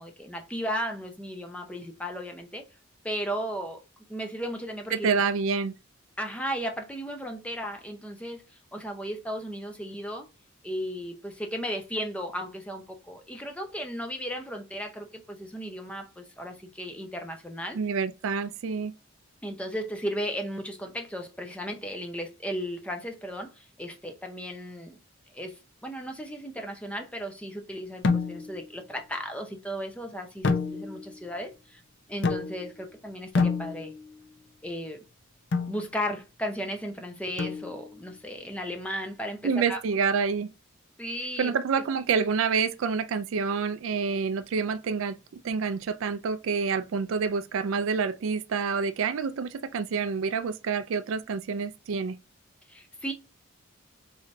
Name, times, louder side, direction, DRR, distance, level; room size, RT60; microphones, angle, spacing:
voice 1, 0.0-2.6 3.0-3.8 4.1-5.2 6.2-8.4 8.7-10.3 10.6-17.8 19.4-25.0 25.3-31.8 32.1-33.9 34.6-35.1 35.7-39.8 41.0-41.5 52.7-53.1, equal, 5° left, 0.6 m, -35 dB
voice 2, 4.9-5.7 17.7-18.9 39.4-40.5 41.4-45.2 45.4-52.2, right 5 dB, 70° right, 0.4 m, -27 dB
sound 1, 28.0-28.7 30.4-31.2 32.2-32.8 33.3-34.1 35.5-35.8 37.4-38.0, left 4 dB, 55° left, 0.5 m, -28 dB
3.8 x 3.1 x 2.6 m
head